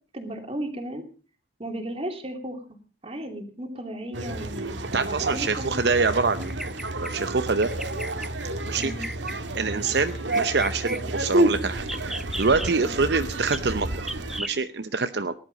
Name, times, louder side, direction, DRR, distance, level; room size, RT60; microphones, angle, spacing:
voice 1, 0.1-1.0 1.6-2.6 3.0-4.7 5.3-5.8 8.7-9.0 12.8-13.0, right 1 dB, 30° right, 5 dB, 2.8 m, -34 dB
sound 1, 4.1-14.4, right 1 dB, 90° right, 1.7 m, -30 dB
voice 2, 4.9-6.5 7.0-7.7 8.7-8.9 9.6-15.3, right 4 dB, 65° right, 10 dB, 0.8 m, -25 dB
Bird vocalization bird call bird song, 6.4-7.2 7.6-8.3 8.8-9.4 10.0-11.0 11.8-12.7 13.5-13.6 14.1-14.6, equal, ahead, 0.6 m, -35 dB
18.5 x 11.5 x 5.2 m, 0.38 s
head